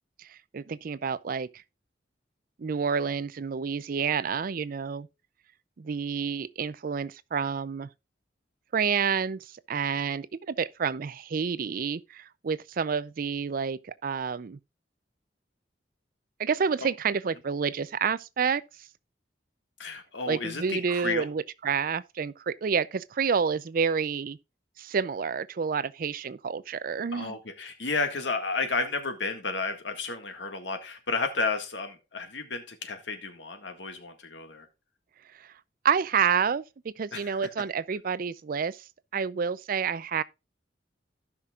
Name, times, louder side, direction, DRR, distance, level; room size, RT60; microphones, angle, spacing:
voice 1, 0.2-1.6 2.6-5.1 5.8-7.9 8.7-14.6 16.4-18.9 20.3-24.4 24.8-27.4 35.4-35.5 35.8-38.9 39.1-40.2, right 6 dB, 50° right, 0.4 m, -29 dB
voice 2, 19.8-21.3 27.1-34.7 37.1-37.4, left 3 dB, 85° left, 1.8 m, -32 dB
16.0 x 5.9 x 2.4 m
head